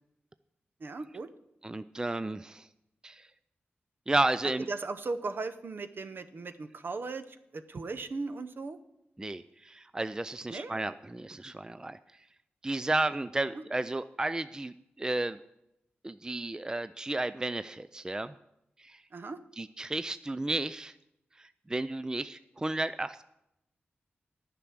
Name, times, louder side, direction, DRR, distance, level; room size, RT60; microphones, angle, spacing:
voice 1, 0.8-1.3 4.7-8.8 10.5-10.7 13.5-13.6 19.1-19.4, right 3 dB, 60° right, 11 dB, 0.7 m, -37 dB
voice 2, 1.6-2.7 3.0-3.3 4.1-4.7 9.2-12.0 12.6-15.4 16.0-18.3 18.8-19.0 19.6-20.9 21.4-23.2, right 2 dB, 15° right, 14 dB, 0.4 m, -33 dB
10.0 x 6.1 x 8.6 m, 0.85 s
cardioid pair, 60°, 4 cm